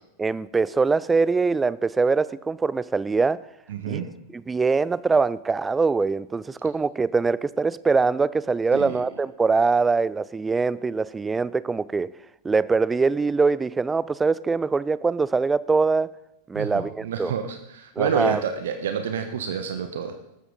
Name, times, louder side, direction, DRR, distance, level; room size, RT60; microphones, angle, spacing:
voice 1, 0.2-3.4 3.9-4.0 4.3-12.1 12.4-16.1 16.5-17.3 18.0-18.4, right 4 dB, 15° right, 20 dB, 0.4 m, -23 dB
voice 2, 3.7-4.1 8.7-9.0 16.5-20.2, right 7 dB, 60° right, 7 dB, 1.2 m, -28 dB
19.5 x 13.0 x 4.0 m, 0.88 s
figure-of-eight pair, 90°, 0 cm